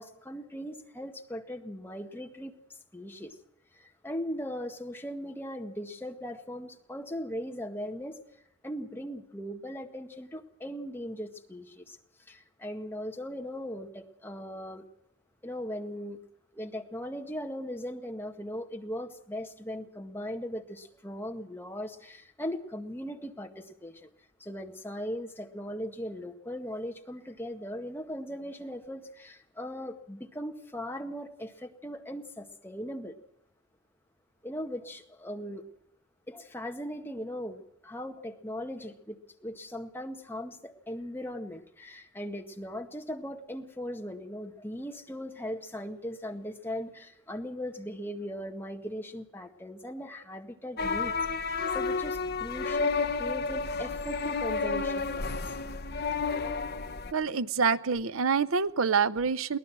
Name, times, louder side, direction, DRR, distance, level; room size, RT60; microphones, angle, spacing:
voice 1, 0.0-2.5 2.9-3.4 3.7-8.2 8.6-12.0 12.3-14.8 15.4-16.2 16.5-24.1 24.4-33.2 34.4-35.6 36.3-51.1 51.7-55.4, equal, 10° left, 1.8 m, -39 dB
sound 1, 50.8-57.1, left 4 dB, 50° left, 1.0 m, -31 dB
voice 2, 57.1-59.6, right 5 dB, 80° right, 0.7 m, -26 dB
23.0 x 18.5 x 6.1 m
head